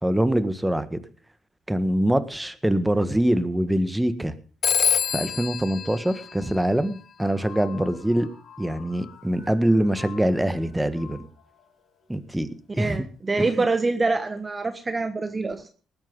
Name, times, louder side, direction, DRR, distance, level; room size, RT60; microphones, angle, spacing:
voice 1, 0.0-1.0 1.7-4.3 5.1-8.3 8.6-11.3 12.1-12.5 12.7-13.0 13.4-13.6, right 1 dB, 10° right, 13 dB, 1.6 m, -24 dB
Telephone, 4.6-7.1, left 7 dB, 50° left, 0.7 m, -26 dB
sound 1, 7.2-12.2, left 9 dB, 90° left, 4.6 m, -48 dB
voice 2, 12.8-15.7, right 3 dB, 25° right, 10 dB, 1.2 m, -25 dB
19.5 x 8.9 x 5.5 m, 0.39 s
cardioid pair, 90°, 0 cm